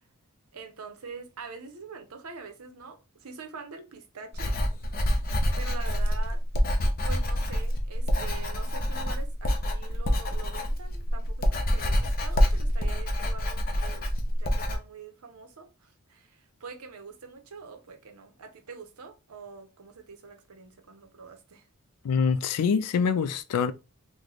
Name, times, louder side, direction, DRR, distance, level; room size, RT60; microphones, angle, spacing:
voice 1, 0.5-4.5 5.6-6.4 7.0-21.7, right 5 dB, 75° right, 0.7 m, -44 dB
Writing, 4.3-14.8, equal, 40° left, 0.6 m, -26 dB
voice 2, 22.0-23.7, left 6 dB, 85° left, 0.4 m, -25 dB
3.0 x 2.2 x 3.9 m
head